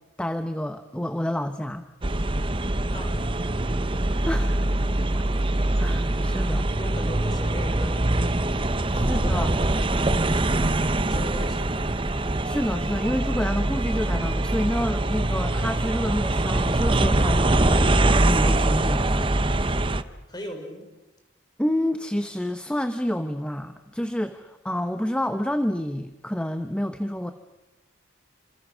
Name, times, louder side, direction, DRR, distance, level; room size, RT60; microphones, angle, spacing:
voice 1, 0.2-1.8 4.3-4.7 5.1-5.2 5.8-6.7 8.9-9.6 12.4-19.3 21.6-27.3, equal, 5° left, 8 dB, 0.9 m, -28 dB
sound 1, 2.0-20.0, right 2 dB, 25° right, 0.8 m, -23 dB
voice 2, 2.9-3.3 6.8-8.4 8.9-10.6 11.1-11.8 20.3-20.9, left 1 dB, 20° left, 4 dB, 4.8 m, -39 dB
29.5 x 27.0 x 6.3 m, 1.0 s
head